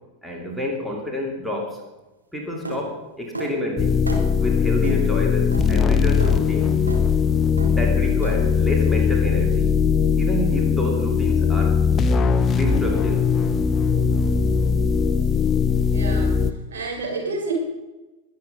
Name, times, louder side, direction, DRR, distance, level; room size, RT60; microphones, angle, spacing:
voice 1, 0.2-1.8 2.3-4.0 4.4-6.8 7.7-9.7 10.2-11.8 12.5-13.3, left 1 dB, 5° right, -1 dB, 2.6 m, -28 dB
sound 1, 2.7-2.8 3.3-3.5 4.1-4.3 4.8-5.0 5.5-5.7 6.2-6.3 6.9-7.0 7.6-7.8 8.2-8.4, right 2 dB, 85° right, 2.5 m, -31 dB
sound 2, 3.8-16.5, left 6 dB, 25° left, 0.7 m, -20 dB
voice 2, 15.9-16.4 16.7-17.5, right 3 dB, 60° right, -1 dB, 4.9 m, -29 dB
22.0 x 7.7 x 5.3 m, 1.1 s
figure-of-eight pair, 90°, 0 cm